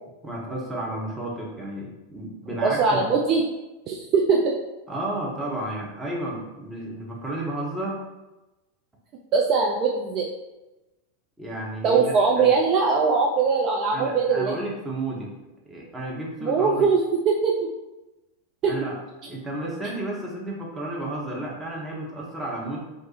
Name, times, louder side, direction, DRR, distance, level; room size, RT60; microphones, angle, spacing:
voice 1, 0.2-3.0 4.9-8.0 11.4-12.5 13.9-15.3 15.6-16.9 18.6-18.9 19.3-22.8, right 1 dB, 10° right, -4 dB, 0.8 m, -32 dB
voice 2, 2.6-3.4 3.9-4.5 9.3-10.3 11.8-14.6 16.4-17.7 18.6-18.7, right 5 dB, 35° right, -1 dB, 0.3 m, -21 dB
2.4 x 2.4 x 4.0 m, 1.0 s
figure-of-eight pair, 90°, 0 cm